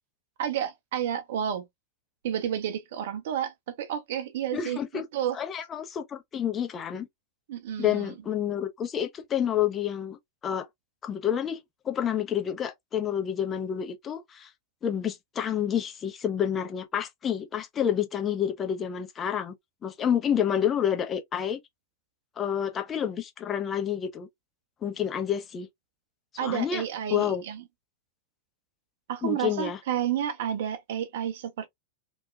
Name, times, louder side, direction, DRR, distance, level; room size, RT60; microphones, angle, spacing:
voice 1, 0.4-1.6 2.2-4.8 5.1-5.4 7.5-8.1 26.4-27.6 29.1-31.7, right 10 dB, 55° right, 0.5 m, -30 dB
voice 2, 4.5-5.0 5.3-7.1 7.8-10.2 10.4-10.7 11.0-11.6 11.8-14.5 14.8-19.5 19.8-21.6 22.4-24.3 24.8-25.7 26.4-26.8 27.1-27.4 29.2-29.8, left 9 dB, 25° left, 0.7 m, -29 dB
3.0 x 2.2 x 2.4 m
figure-of-eight pair, 90°, 0 cm